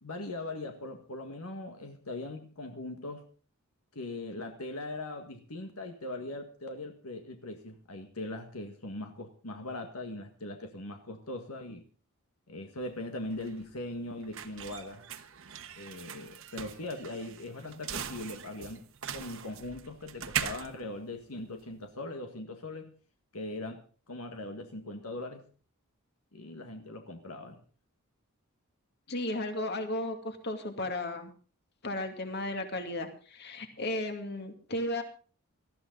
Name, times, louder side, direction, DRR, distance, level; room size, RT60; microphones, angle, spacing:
voice 1, 0.0-3.2 3.9-11.8 12.5-15.0 15.7-18.9 19.1-22.9 23.3-25.4 26.3-27.6, left 2 dB, 80° left, 5 dB, 1.8 m, -40 dB
sound 1, 12.8-21.9, right 8 dB, 60° right, 1.2 m, -41 dB
voice 2, 29.1-31.3 31.8-35.0, left 1 dB, 50° left, 5 dB, 2.5 m, -34 dB
18.5 x 13.5 x 4.0 m, 0.39 s
head